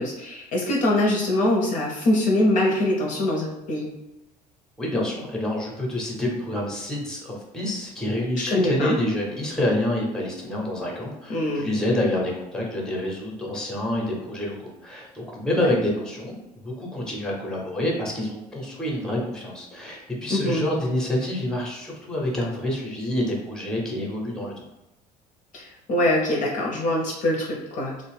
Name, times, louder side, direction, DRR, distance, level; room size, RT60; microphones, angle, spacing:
voice 1, 0.0-3.9 8.5-8.9 11.3-11.7 15.6-15.7 20.3-20.7 25.5-28.0, left 1 dB, 40° left, -2 dB, 0.6 m, -23 dB
voice 2, 4.8-16.4 16.6-24.6, left 1 dB, 5° left, -2 dB, 0.7 m, -27 dB
2.4 x 2.0 x 3.2 m, 0.95 s
figure-of-eight pair, 60°, 21 cm